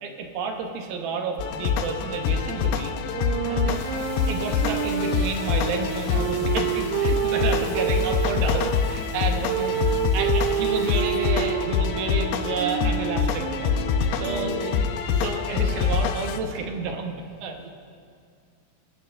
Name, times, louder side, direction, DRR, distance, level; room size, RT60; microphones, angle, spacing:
voice 1, 0.0-2.9 3.5-3.6 4.3-9.4 10.1-13.7 14.2-14.5 15.2-17.1 17.4-17.6, right 4 dB, 75° right, 3 dB, 2.8 m, -30 dB
sound 1, 1.4-16.4, left 6 dB, 85° left, 2.8 m, -26 dB
sound 2, 3.1-8.7 9.4-15.0, right 10 dB, 90° right, 2.9 m, -29 dB
sound 3, 3.7-11.3, right 1 dB, 15° right, 4.6 m, -45 dB
voice 2, 9.4-9.9 14.3-14.9 17.6-17.7, right 3 dB, 50° right, 0 dB, 1.3 m, -36 dB
25.0 x 13.5 x 3.3 m, 2.3 s
omnidirectional pair, 4.6 m